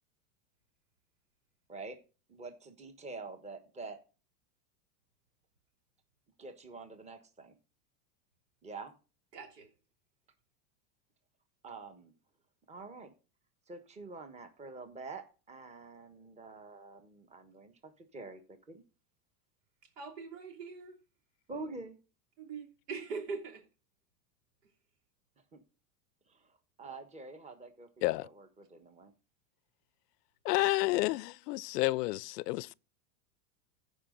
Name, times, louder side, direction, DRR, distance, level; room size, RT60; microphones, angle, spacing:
voice 1, 2.3-4.0 6.4-7.5 8.6-8.9 11.6-12.1 12.7-13.1 13.7-18.8 21.5-22.0 25.5-25.6 26.3-26.5 26.8-29.1, right 3 dB, 15° right, 1.2 m, -47 dB
voice 2, 9.3-9.7 20.0-21.0 22.4-23.6, right 4 dB, 85° right, 3.1 m, -42 dB
voice 3, 30.4-32.7, left 20 dB, 80° left, 0.5 m, -30 dB
14.5 x 5.1 x 3.8 m
supercardioid pair, 135°, 46 cm